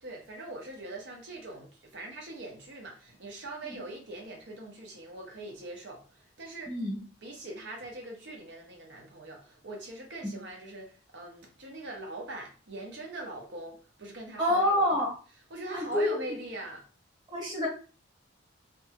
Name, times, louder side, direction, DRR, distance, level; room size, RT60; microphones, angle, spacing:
voice 1, 0.0-6.7 7.2-15.0 15.5-16.8, right 2 dB, 60° right, 0.8 m, -42 dB
voice 2, 6.7-7.0 14.4-15.1 15.7-16.2 17.3-17.7, left 1 dB, 20° right, 1.2 m, -27 dB
2.7 x 2.3 x 2.8 m
head